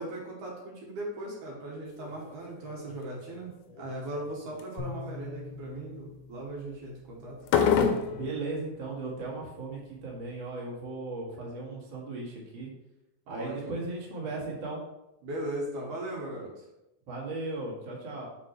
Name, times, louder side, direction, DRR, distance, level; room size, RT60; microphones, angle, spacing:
voice 1, 0.0-7.4 13.3-13.8 15.2-16.6, right 1 dB, 65° right, -3 dB, 2.6 m, -38 dB
sound 1, 2.0-2.3 2.7-3.2 3.7-4.2 4.6-4.8 7.4-8.3, left 6 dB, 80° left, 1.9 m, -26 dB
sound 2, 4.8-8.0, left 4 dB, 50° left, 0.7 m, -44 dB
voice 2, 8.0-12.7 13.3-14.8 17.1-18.3, right 3 dB, 40° right, -4 dB, 1.9 m, -37 dB
7.1 x 6.2 x 3.3 m, 0.93 s
omnidirectional pair, 4.1 m